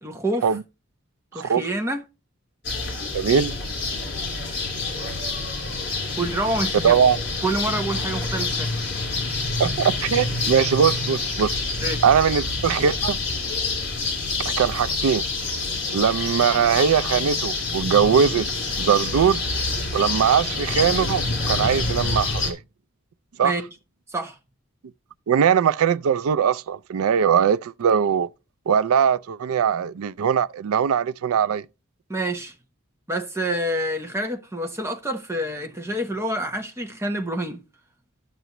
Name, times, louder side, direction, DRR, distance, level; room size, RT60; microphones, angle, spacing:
voice 1, 0.0-0.5 1.3-2.0 6.2-7.0 7.4-8.7 11.8-12.0 23.4-23.6 24.1-24.4 32.1-32.5 33.1-37.6, right 1 dB, 10° right, 0.9 m, -27 dB
sound 1, 2.6-22.5, left 3 dB, 55° left, 3.2 m, -27 dB
voice 2, 3.1-3.5 6.8-7.2 9.6-11.6 12.0-13.2 14.4-15.3 15.9-18.5 18.8-19.5 19.9-22.6 23.4-23.5 25.3-28.3 28.7-31.7, right 7 dB, 85° right, 0.4 m, -21 dB
12.0 x 6.8 x 3.0 m
head